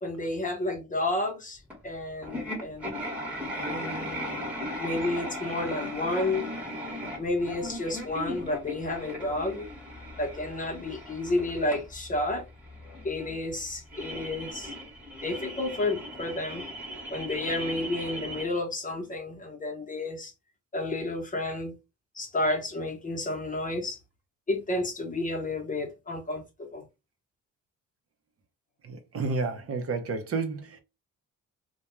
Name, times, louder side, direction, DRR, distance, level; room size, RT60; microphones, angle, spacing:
voice 1, 0.0-3.1 3.7-6.5 7.2-9.7 10.2-12.5 13.0-14.7 15.2-16.6 17.1-20.3 20.7-21.7 22.1-24.0 24.5-26.8, left 2 dB, 25° left, 0.8 m, -31 dB
sound 1, 1.7-1.8 2.2-18.5, equal, 5° right, 1.1 m, -37 dB
voice 2, 28.8-30.8, right 4 dB, 50° right, 0.7 m, -31 dB
2.3 x 2.2 x 2.9 m
cardioid pair, 90°, 30 cm